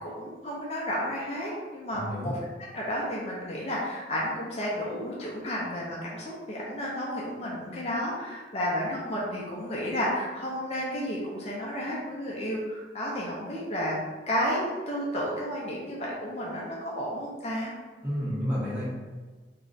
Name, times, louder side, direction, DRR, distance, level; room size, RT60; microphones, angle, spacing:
voice 1, 0.0-2.4 2.7-14.0 14.3-17.7, equal, 35° left, -5 dB, 0.4 m, -32 dB
voice 2, 1.9-2.3 18.0-18.9, equal, 5° right, -9 dB, 0.7 m, -30 dB
2.4 x 2.1 x 3.7 m, 1.4 s
head